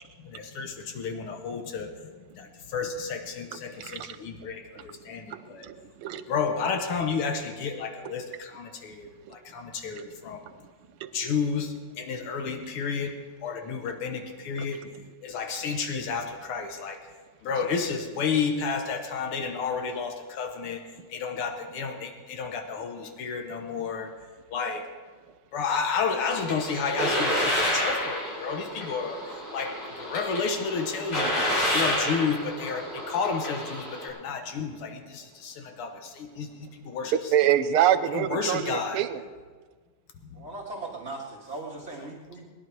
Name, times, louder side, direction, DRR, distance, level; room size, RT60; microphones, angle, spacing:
voice 1, 0.2-5.7 6.3-10.4 11.1-14.9 15.2-17.0 17.4-20.8 21.1-24.1 24.5-24.9 25.5-31.4 31.7-37.1 38.1-39.0 40.4-40.5, left 5 dB, 90° left, 5 dB, 2.0 m, -31 dB
voice 2, 3.8-4.2 4.8-4.9 5.3-6.2 9.2-9.3 10.6-10.7 11.0-11.1 14.6-14.7 14.9-15.0 37.1-39.2, right 10 dB, 85° right, 12 dB, 1.6 m, -26 dB
sound 1, 26.2-34.1, equal, 70° left, 5.1 m, -29 dB
voice 3, 40.3-42.5, right 2 dB, 30° right, -5 dB, 1.9 m, -38 dB
20.0 x 11.0 x 4.6 m, 1.4 s
omnidirectional pair, 2.4 m